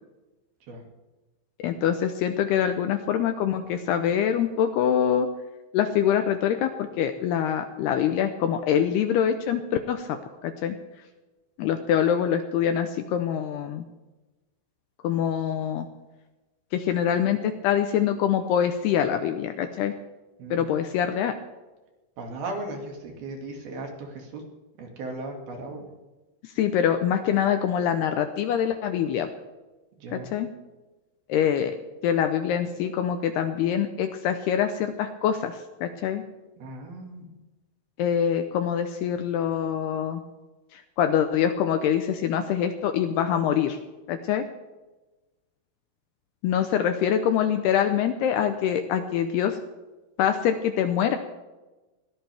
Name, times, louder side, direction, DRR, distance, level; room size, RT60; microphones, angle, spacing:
voice 1, 1.6-5.3 5.7-9.6 9.9-10.8 11.6-13.9 15.0-15.9 16.7-19.9 20.5-21.3 26.6-29.3 30.1-30.5 31.3-31.8 32.0-36.2 38.0-40.2 40.7-43.8 44.1-44.5 46.4-49.6 50.2-51.2, left 9 dB, 75° left, 8 dB, 2.5 m, -24 dB
voice 2, 20.4-20.9 22.2-24.4 24.8-25.9 30.0-30.3 36.6-37.3, right 2 dB, 60° right, 2 dB, 3.9 m, -37 dB
21.5 x 17.5 x 3.5 m, 1.1 s
omnidirectional pair, 5.3 m